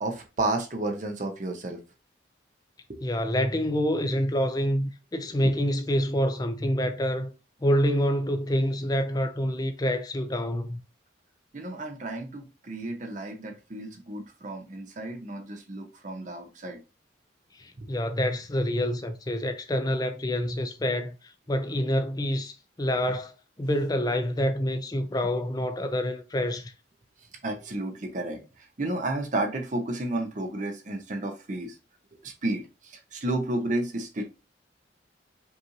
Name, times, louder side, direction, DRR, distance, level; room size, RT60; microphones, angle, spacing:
voice 1, 0.0-1.8 2.9-3.1 4.1-4.2 5.3-5.5 11.5-16.8 17.8-17.9 27.4-31.7 32.2-34.2, right 2 dB, 40° right, 0.7 m, -32 dB
voice 2, 3.0-7.3 7.6-10.8 17.6-21.1 21.5-26.7, equal, 20° left, 0.4 m, -27 dB
5.4 x 2.5 x 2.9 m
head